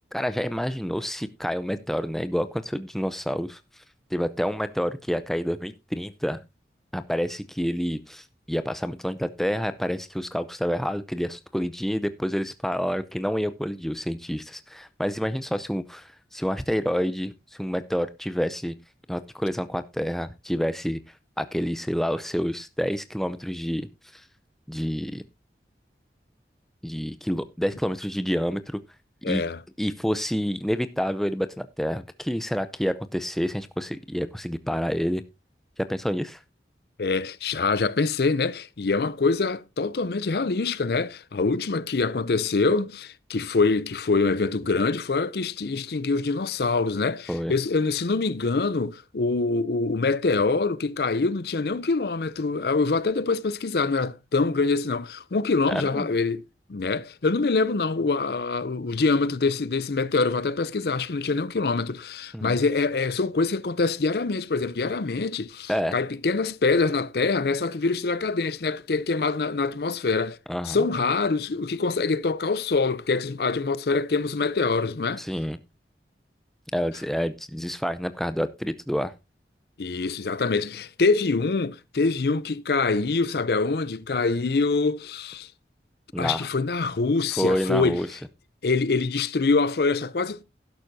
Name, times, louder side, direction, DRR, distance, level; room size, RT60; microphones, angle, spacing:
voice 1, 0.1-3.6 4.1-6.4 6.9-17.3 17.6-18.7 19.1-21.0 21.4-23.9 24.1-24.2 24.7-25.2 26.8-28.8 29.3-29.4 29.8-35.2 35.8-36.4 47.3-47.5 55.7-56.1 62.3-62.6 65.7-65.9 70.5-70.8 75.2-75.6 76.7-79.1 86.1-86.5 87.4-88.1, equal, ahead, 0.5 m, -28 dB
voice 2, 29.2-29.6 37.0-56.4 56.7-70.4 70.6-75.2 79.8-85.5 86.2-88.0 88.6-90.4, left 4 dB, 65° left, 0.5 m, -25 dB
12.0 x 11.0 x 2.7 m
head